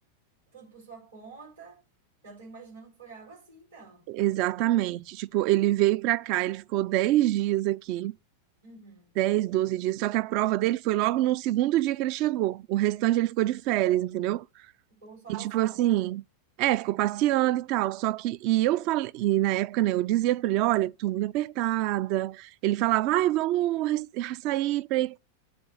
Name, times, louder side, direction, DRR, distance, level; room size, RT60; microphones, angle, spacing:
voice 1, 0.5-1.8 2.2-4.1 5.3-5.5 8.6-9.1 14.9-15.8, right 4 dB, 65° right, 5.1 m, -48 dB
voice 2, 4.1-8.1 9.2-14.5 15.3-16.2 16.6-25.2, right 15 dB, 45° right, 0.3 m, -25 dB
8.6 x 4.0 x 6.5 m
figure-of-eight pair, 90°, 0 cm